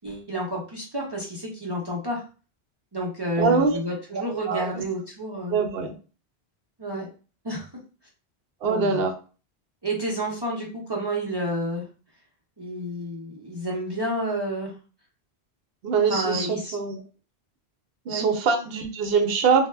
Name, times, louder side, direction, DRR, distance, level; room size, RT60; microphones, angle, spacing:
voice 1, 0.0-2.2 2.9-5.6 6.8-7.1 7.4-7.7 8.6-9.0 9.8-11.9 12.6-14.7 16.1-16.8 18.1-18.3, equal, 35° right, -3 dB, 0.4 m, -30 dB
voice 2, 3.4-3.8 4.5-4.8 5.5-5.9 8.6-9.1 15.8-16.5 16.7-17.0 18.1-19.7, right 5 dB, 70° right, 6 dB, 0.7 m, -23 dB
2.1 x 2.0 x 3.2 m, 0.36 s
omnidirectional pair, 1.1 m